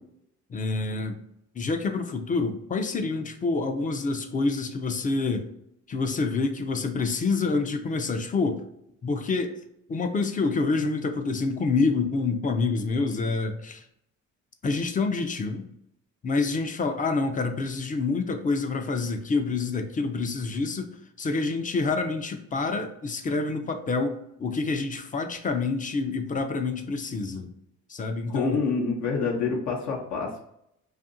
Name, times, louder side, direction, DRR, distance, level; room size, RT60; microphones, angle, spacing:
voice 1, 0.5-1.2 1.6-5.5 5.9-8.7 9.0-9.6 9.9-13.8 14.6-15.7 16.2-27.5 27.9-28.6, left 3 dB, 30° left, 6 dB, 0.4 m, -27 dB
voice 2, 28.3-30.4, left 4 dB, 70° left, -1 dB, 0.7 m, -27 dB
2.7 x 2.4 x 2.6 m, 0.76 s
cardioid pair, 90°, 30 cm